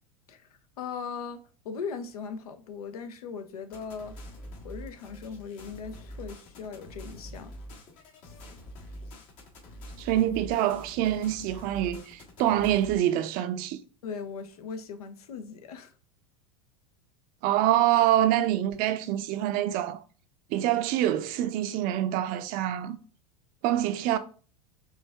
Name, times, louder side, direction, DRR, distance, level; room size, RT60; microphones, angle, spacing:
voice 1, 0.8-4.2 4.6-7.5 14.0-15.9, left 5 dB, 75° left, 0.7 m, -39 dB
sound 1, 3.7-13.0, equal, 55° left, 1.5 m, -45 dB
voice 2, 10.0-13.8 17.4-20.0 20.5-23.0 23.6-24.2, right 12 dB, 50° right, 0.5 m, -26 dB
4.7 x 2.6 x 3.3 m
hypercardioid pair, 90°, 19 cm